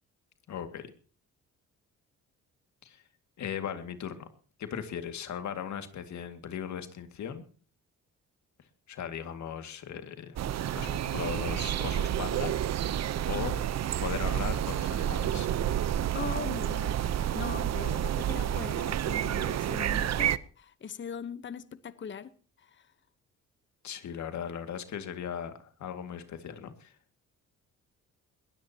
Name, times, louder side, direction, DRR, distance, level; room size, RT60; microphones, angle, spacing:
voice 1, 0.5-0.9 2.8-3.0 3.4-4.3 4.6-7.4 8.9-10.4 10.7-12.5 13.2-13.6 14.0-15.5 23.8-26.9, left 8 dB, 70° left, 2.2 m, -38 dB
sound 1, 10.4-20.4, right 10 dB, 60° right, 0.9 m, -30 dB
voice 2, 16.1-22.3 22.6-22.9, left 7 dB, 40° left, 1.0 m, -40 dB
21.0 x 16.5 x 2.9 m
cardioid pair, 90°, 30 cm